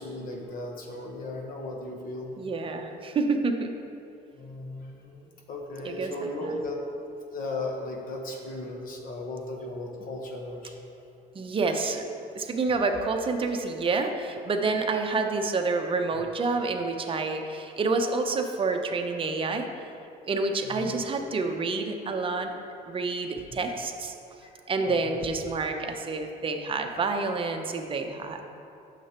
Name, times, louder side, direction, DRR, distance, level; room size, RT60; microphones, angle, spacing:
voice 1, 0.0-2.3 4.3-6.8 7.3-10.8 20.6-21.0 23.5-23.6 24.4-24.5 24.8-25.2, left 2 dB, 55° left, 1 dB, 1.2 m, -36 dB
voice 2, 2.4-3.7 5.8-6.6 11.3-12.0 12.3-19.7 20.3-22.5 22.9-24.1 24.7-28.4, right 3 dB, 30° right, 4 dB, 0.7 m, -28 dB
9.8 x 6.7 x 3.0 m, 2.7 s
cardioid pair, 110°, 17 cm